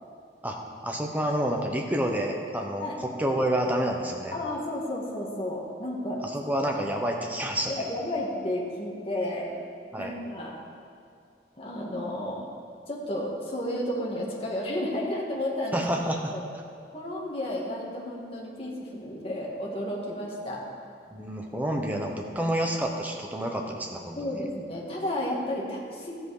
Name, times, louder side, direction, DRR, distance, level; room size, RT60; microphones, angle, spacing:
voice 1, 0.8-4.3 6.2-7.7 9.9-10.1 15.7-16.3 21.1-24.4, right 1 dB, 10° right, 1 dB, 1.0 m, -29 dB
voice 2, 4.3-6.2 7.7-9.5 10.0-10.5 11.6-12.5 12.9-15.8 16.2-16.4 16.9-20.6 24.2-26.1, left 1 dB, 35° left, -3 dB, 1.9 m, -32 dB
13.5 x 8.1 x 5.0 m, 2.4 s
head